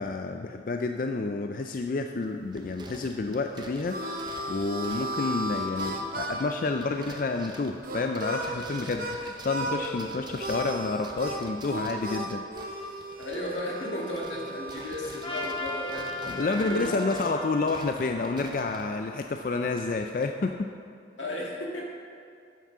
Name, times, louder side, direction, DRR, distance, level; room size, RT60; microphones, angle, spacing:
voice 1, 0.0-4.0 4.5-12.4 16.2-20.7, left 3 dB, 45° left, 5 dB, 0.4 m, -29 dB
sound 1, 2.2-13.9 14.1-20.3, right 2 dB, 25° right, 0.6 m, -48 dB
Harmonica, 3.4-9.2 9.5-10.0 10.4-16.4, right 1 dB, 50° right, 0.9 m, -36 dB
voice 2, 13.2-17.0 21.2-21.9, left 1 dB, 85° left, -2 dB, 2.0 m, -35 dB
Trumpet, 15.2-19.5, left 1 dB, 30° left, 1.3 m, -38 dB
9.1 x 7.4 x 5.9 m, 2.4 s
head